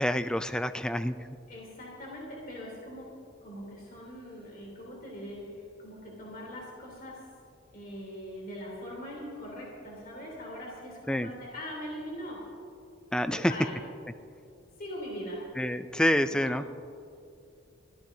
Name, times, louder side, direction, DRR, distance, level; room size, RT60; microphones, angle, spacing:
voice 1, 0.0-1.3 11.1-11.3 13.1-13.5 15.6-16.7, equal, 5° left, 11 dB, 0.3 m, -27 dB
voice 2, 1.5-3.1 3.4-7.2 7.7-12.5 13.3-13.7 14.8-15.5 16.2-16.6, equal, 45° left, -3 dB, 3.2 m, -41 dB
23.0 x 15.0 x 2.7 m, 2.5 s
head